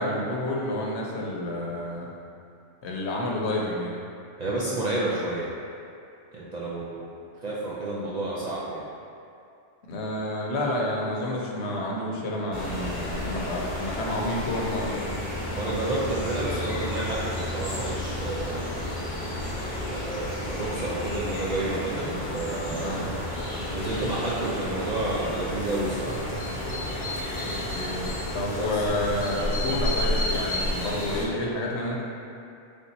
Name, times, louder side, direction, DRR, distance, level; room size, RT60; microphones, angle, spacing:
voice 1, 0.0-2.1 2.8-4.0 9.9-15.1 22.7-23.1 27.4-28.1 28.3-32.0, left 1 dB, 65° left, -2 dB, 0.9 m, -29 dB
voice 2, 4.4-5.5 6.3-7.1 7.4-8.8 15.5-18.7 19.9-23.1 23.7-26.1 28.6-28.8, right 2 dB, 65° right, -7 dB, 0.4 m, -30 dB
sound 1, 12.5-31.2, left 1 dB, 40° left, 0.8 m, -31 dB
3.5 x 2.7 x 4.0 m, 2.5 s
omnidirectional pair, 1.3 m